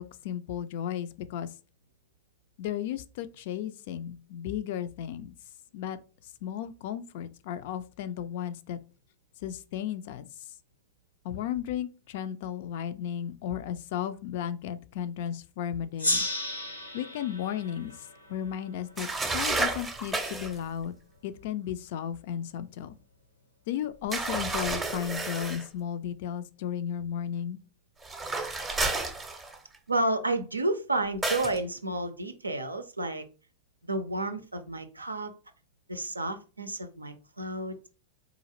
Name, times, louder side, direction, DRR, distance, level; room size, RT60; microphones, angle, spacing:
voice 1, 0.0-1.5 2.6-5.3 5.7-6.0 6.4-8.8 9.4-10.3 11.2-16.3 16.9-18.0 18.3-21.0 21.2-23.0 23.7-27.6, left 10 dB, 50° left, 0.3 m, -34 dB
Gong, 16.0-19.1, left 2 dB, 85° left, 0.7 m, -33 dB
sound 1, 19.0-20.6 24.1-25.7 28.0-29.8 31.2-31.6, right 3 dB, 10° right, 0.6 m, -31 dB
voice 2, 29.9-33.2 33.8-35.3 35.9-37.9, right 2 dB, 80° right, 0.4 m, -31 dB
3.9 x 2.4 x 2.9 m
figure-of-eight pair, 90°, 0 cm